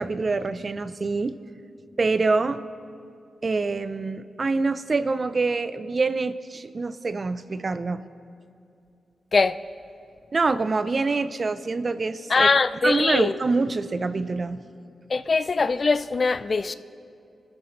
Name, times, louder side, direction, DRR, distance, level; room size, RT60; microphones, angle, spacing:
voice 1, 0.0-1.4 2.0-2.6 3.4-8.0 10.3-12.5 12.8-14.6, right 3 dB, 45° right, 0.6 m, -25 dB
voice 2, 12.3-13.3 15.1-16.7, left 4 dB, 45° left, 0.4 m, -21 dB
26.0 x 13.5 x 3.2 m
cardioid pair, 60°, 0 cm